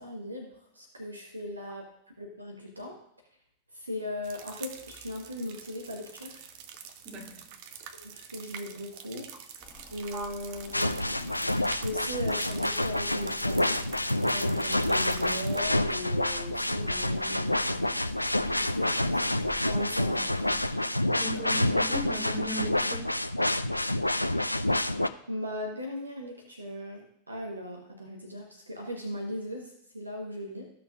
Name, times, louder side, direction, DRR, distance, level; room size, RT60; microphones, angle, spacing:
voice 1, 0.0-1.9 2.2-3.0 3.7-6.5 8.0-9.3 9.9-11.3 11.8-13.8 14.3-18.0 18.5-20.6 25.3-30.7, left 1 dB, 80° right, 1 dB, 1.2 m, -38 dB
sound 1, 4.2-15.6, right 8 dB, 50° right, 0.7 m, -47 dB
voice 2, 7.0-7.4 10.1-10.3 21.1-23.1, right 1 dB, 30° right, -2 dB, 2.6 m, -37 dB
sound 2, 9.6-20.8, left 3 dB, 10° left, 1.5 m, -51 dB
sound 3, 10.7-25.1, left 1 dB, 85° left, 0.3 m, -28 dB
15.0 x 5.9 x 2.5 m, 0.73 s
figure-of-eight pair, 90°, 0 cm